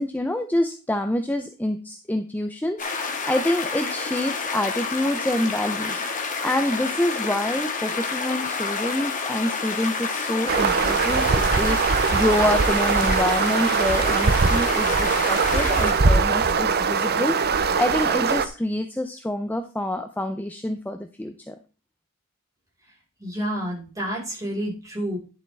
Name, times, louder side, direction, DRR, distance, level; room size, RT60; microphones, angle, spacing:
voice 1, 0.0-21.6, left 1 dB, 10° left, 6 dB, 0.6 m, -27 dB
sound 1, 2.8-15.9, left 4 dB, 35° left, 1.7 m, -29 dB
sound 2, 10.5-18.5, right 5 dB, 45° right, 0.7 m, -21 dB
voice 2, 23.2-25.2, equal, 15° right, -4 dB, 5.1 m, -29 dB
11.0 x 7.3 x 3.5 m, 0.34 s
head